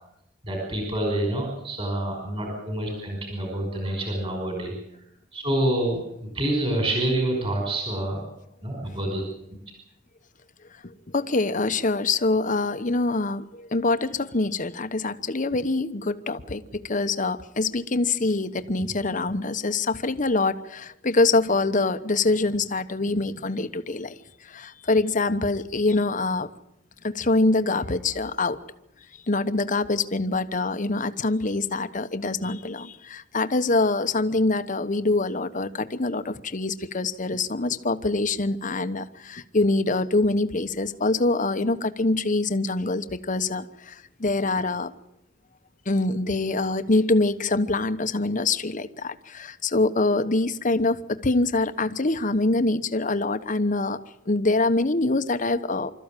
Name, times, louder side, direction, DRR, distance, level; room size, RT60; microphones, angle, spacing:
voice 1, 0.4-4.7 5.3-8.2 8.6-9.2, right 1 dB, 30° right, 1 dB, 5.3 m, -27 dB
voice 2, 11.1-24.2 24.5-26.5 27.0-28.6 29.3-44.9 45.9-54.0 54.3-55.9, left 2 dB, 40° left, 10 dB, 1.0 m, -24 dB
25.5 x 14.0 x 9.1 m, 0.82 s
head